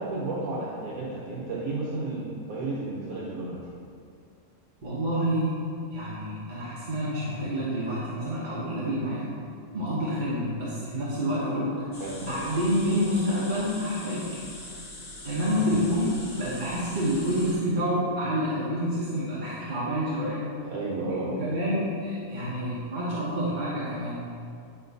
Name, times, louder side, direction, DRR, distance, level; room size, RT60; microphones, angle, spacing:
voice 1, 0.0-3.6 12.0-12.2 15.5-15.8 20.6-21.4, right 2 dB, 65° right, -5 dB, 1.3 m, -32 dB
voice 2, 4.8-5.6 5.9-9.3 9.7-11.8 12.2-14.3 15.2-20.5 21.1-24.2, equal, 35° right, -8 dB, 1.0 m, -28 dB
sound 1, 11.9-17.5, left 1 dB, 65° left, 1.9 m, -42 dB
9.3 x 4.5 x 4.0 m, 2.4 s
omnidirectional pair, 1.6 m